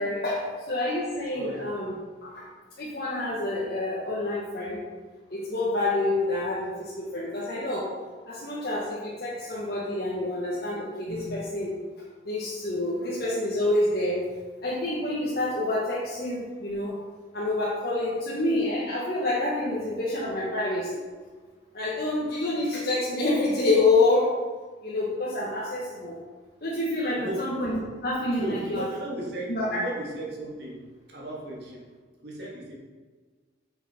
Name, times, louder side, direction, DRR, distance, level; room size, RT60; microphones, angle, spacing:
voice 1, 0.0-1.9 2.2-2.5 2.8-4.8 5.3-7.9 8.3-11.8 12.2-14.2 14.6-16.9 17.3-21.0 21.7-24.3 24.8-26.1 26.6-28.9 29.5-29.8, left 2 dB, 55° left, -6 dB, 1.5 m, -27 dB
voice 2, 28.3-30.8 31.1-31.8 32.2-32.7, right 1 dB, 65° right, -3 dB, 2.3 m, -35 dB
8.6 x 7.1 x 4.5 m, 1.4 s
head